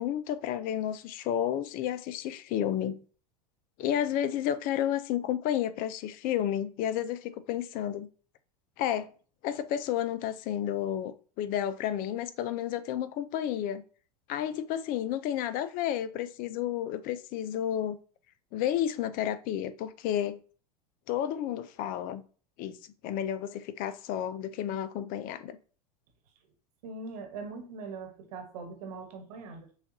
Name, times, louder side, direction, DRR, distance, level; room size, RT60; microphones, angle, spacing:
voice 1, 0.0-3.0 3.8-8.1 8.8-9.1 9.4-13.8 14.3-18.0 18.5-20.4 21.1-22.2 22.6-25.6, left 10 dB, 45° left, 0.5 m, -31 dB
voice 2, 26.8-29.7, right 4 dB, 70° right, 1.3 m, -41 dB
6.2 x 2.4 x 2.7 m
hypercardioid pair, 105°, 20 cm